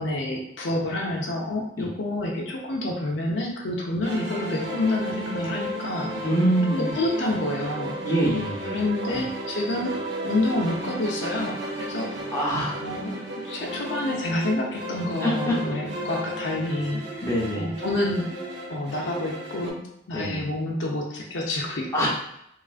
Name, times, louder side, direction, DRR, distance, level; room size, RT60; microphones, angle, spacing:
voice 1, 0.0-6.3 6.7-8.0 8.7-10.0 10.2-12.1 12.8-17.2 17.6-18.3 18.7-22.1, left 1 dB, 70° left, -1 dB, 0.5 m, -28 dB
sound 1, 4.0-19.7, right 1 dB, 60° right, 0.6 m, -33 dB
voice 2, 6.2-6.9 8.0-9.2 12.3-12.8 15.2-15.6 17.2-17.7 20.1-20.4 21.9-22.1, equal, 15° left, -5 dB, 0.6 m, -25 dB
3.1 x 2.4 x 2.4 m, 0.74 s
head